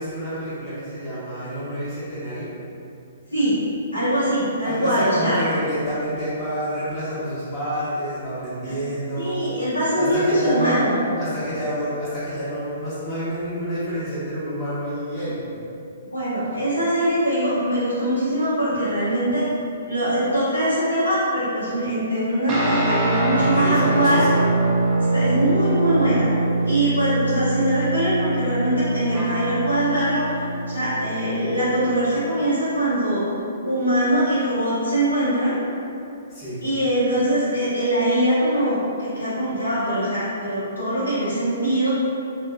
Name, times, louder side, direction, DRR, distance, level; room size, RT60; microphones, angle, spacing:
voice 1, 0.0-2.5 4.6-10.8 11.2-15.4 23.3-24.5 36.3-36.6, equal, 20° left, -13 dB, 1.1 m, -29 dB
voice 2, 3.9-5.4 9.2-11.1 16.1-19.5 19.9-24.3 25.1-26.3 26.6-33.2 33.6-35.6 36.6-41.9, right 1 dB, 90° left, -12 dB, 1.2 m, -22 dB
sound 1, 22.5-32.2, right 2 dB, 25° right, 0.5 m, -23 dB
2.7 x 2.3 x 2.5 m, 2.7 s
figure-of-eight pair, 120°, 0 cm